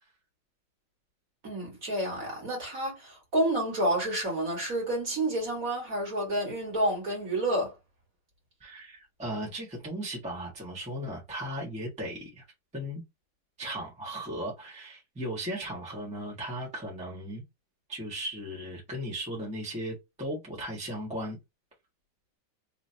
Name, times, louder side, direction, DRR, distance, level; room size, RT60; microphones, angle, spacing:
voice 1, 1.4-7.7, right 1 dB, 40° right, 2.1 m, -29 dB
voice 2, 8.6-12.4 12.7-13.0 13.6-17.4 17.9-21.4, equal, 5° right, 1.2 m, -36 dB
3.9 x 3.0 x 2.8 m
omnidirectional pair, 2.3 m